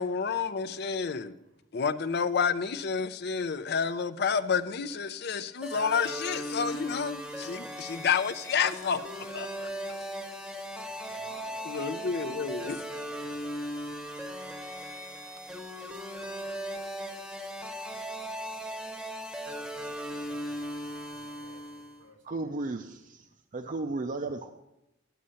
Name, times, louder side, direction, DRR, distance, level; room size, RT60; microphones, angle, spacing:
voice 1, 0.0-1.3 1.7-9.7 11.7-12.8, left 6 dB, 60° left, 0.5 m, -30 dB
sound 1, 5.6-22.0, equal, 5° right, 0.9 m, -38 dB
voice 2, 10.8-14.4 19.6-22.6 23.3-23.4, right 2 dB, 80° right, 1.9 m, -55 dB
voice 3, 22.2-23.3 23.5-24.5, right 3 dB, 45° right, 0.5 m, -34 dB
11.0 x 6.3 x 5.7 m
head